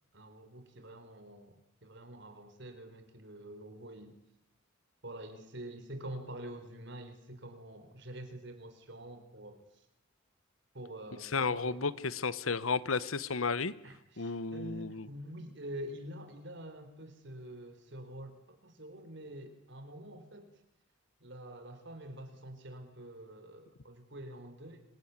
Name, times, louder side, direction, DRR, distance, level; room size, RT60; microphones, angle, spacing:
voice 1, 0.1-4.2 5.0-9.9 10.7-11.8 13.8-20.6 21.2-24.8, right 1 dB, 55° right, 7 dB, 4.3 m, -46 dB
voice 2, 11.2-13.7 14.2-15.1, left 4 dB, 80° left, 17 dB, 1.1 m, -33 dB
26.5 x 19.5 x 9.6 m, 0.81 s
head